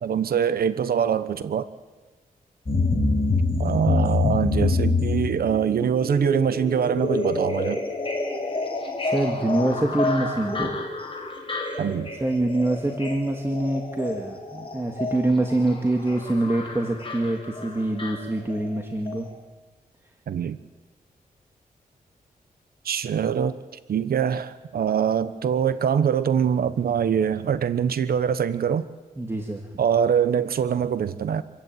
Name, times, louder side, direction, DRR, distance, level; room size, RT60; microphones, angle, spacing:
voice 1, 0.0-1.7 3.6-7.8 11.8-12.1 20.3-20.6 22.8-23.6 23.9-28.9 29.8-31.4, right 8 dB, 80° right, 13 dB, 1.0 m, -23 dB
sound 1, 2.7-18.8 19.1-19.2, left 3 dB, 35° left, 4.8 m, -27 dB
voice 2, 9.0-10.8 12.2-19.3 29.2-29.7, right 1 dB, 15° right, 3 dB, 1.9 m, -25 dB
26.5 x 14.5 x 9.2 m, 1.3 s
wide cardioid pair, 115°, 16 cm